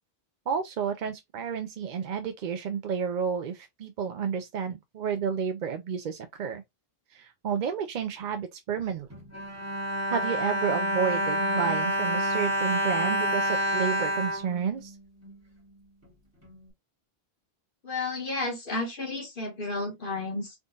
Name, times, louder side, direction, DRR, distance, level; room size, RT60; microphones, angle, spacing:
voice 1, 0.5-6.6 7.1-9.1 10.1-15.0, right 7 dB, 55° right, 0.6 m, -31 dB
Bowed string instrument, 9.1-15.3 16.0-16.1 16.4-16.6, equal, 15° right, 2.0 m, -28 dB
voice 2, 17.8-20.5, left 3 dB, 55° left, 1.7 m, -32 dB
3.8 x 3.7 x 2.4 m
omnidirectional pair, 1.0 m